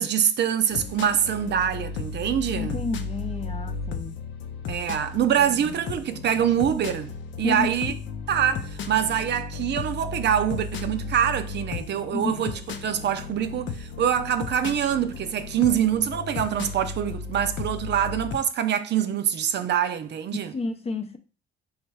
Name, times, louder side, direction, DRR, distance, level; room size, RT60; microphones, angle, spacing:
voice 1, 0.0-2.8 4.7-7.9 8.3-20.6, right 9 dB, 60° right, 0.5 m, -25 dB
sound 1, 0.7-18.4, left 5 dB, 70° left, 0.6 m, -35 dB
voice 2, 2.5-4.2 5.6-5.7 7.4-8.0 12.1-12.4 20.3-21.2, left 3 dB, 30° left, 0.6 m, -31 dB
3.2 x 3.0 x 4.7 m
cardioid pair, 90°, 20 cm